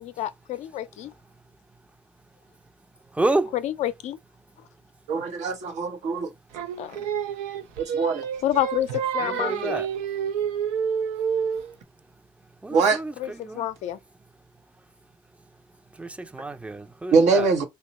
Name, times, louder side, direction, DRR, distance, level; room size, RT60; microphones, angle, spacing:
voice 1, 0.0-1.1 3.5-4.2 6.8-7.0 8.4-9.8 13.2-14.0, left 12 dB, 70° left, 0.4 m, -29 dB
voice 2, 3.1-3.5 9.2-9.9 12.6-13.7 15.9-17.5, right 2 dB, 10° right, 0.5 m, -29 dB
voice 3, 5.1-6.3 7.8-8.2 12.7-13.0 17.1-17.6, right 4 dB, 70° right, 0.9 m, -22 dB
Singing, 6.5-11.7, right 7 dB, 85° right, 0.4 m, -28 dB
2.9 x 2.3 x 4.1 m
supercardioid pair, 60°, 12 cm